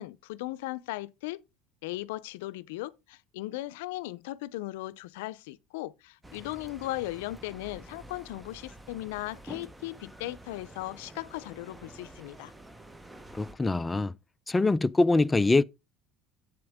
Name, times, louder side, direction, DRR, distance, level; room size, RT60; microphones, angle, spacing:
voice 1, 0.0-1.4 1.8-12.5, left 17 dB, 85° left, 0.5 m, -37 dB
sound 1, 6.2-13.5, right 1 dB, 10° right, 0.8 m, -49 dB
voice 2, 13.3-14.1 14.5-15.6, left 2 dB, 15° left, 0.4 m, -24 dB
7.8 x 7.8 x 3.5 m
supercardioid pair, 115°, 0 cm